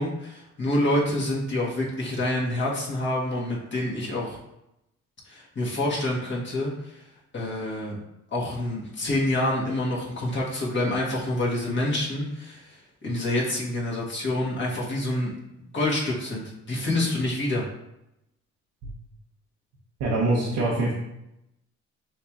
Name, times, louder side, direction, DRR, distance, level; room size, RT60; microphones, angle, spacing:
voice 1, 0.0-4.4 5.3-7.0 7.3-8.0 8.3-15.3 15.6-17.6, left 1 dB, 40° left, -4 dB, 1.5 m, -27 dB
voice 2, 20.0-20.9, right 2 dB, 80° right, -4 dB, 0.9 m, -23 dB
6.2 x 3.0 x 2.4 m, 0.86 s
cardioid pair, 90°, 30 cm